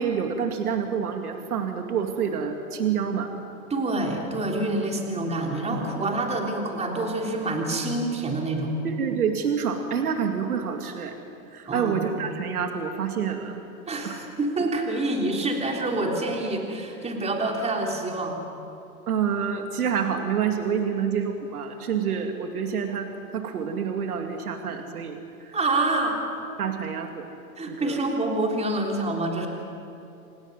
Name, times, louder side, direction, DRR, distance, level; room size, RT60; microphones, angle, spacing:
voice 1, 0.0-3.3 8.8-11.2 11.5-13.6 14.0-14.2 19.1-25.6 26.6-27.3 27.7-28.0, right 7 dB, 90° right, 5 dB, 2.3 m, -27 dB
voice 2, 3.7-8.7 11.7-12.0 13.9-18.4 25.5-26.2 27.6-29.5, right 2 dB, 15° right, 1 dB, 3.7 m, -27 dB
28.0 x 16.5 x 9.7 m, 2.7 s
hypercardioid pair, 120°, 43 cm